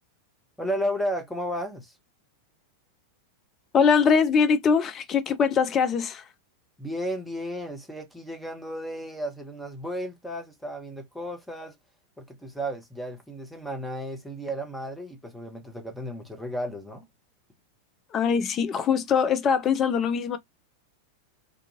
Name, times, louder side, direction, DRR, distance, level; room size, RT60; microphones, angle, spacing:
voice 1, 0.6-1.9 6.8-11.7 12.2-17.0, equal, 5° left, 0.8 m, -33 dB
voice 2, 3.7-6.2 18.1-20.4, left 6 dB, 30° left, 0.5 m, -22 dB
2.6 x 2.4 x 2.5 m
figure-of-eight pair, 90°, 0 cm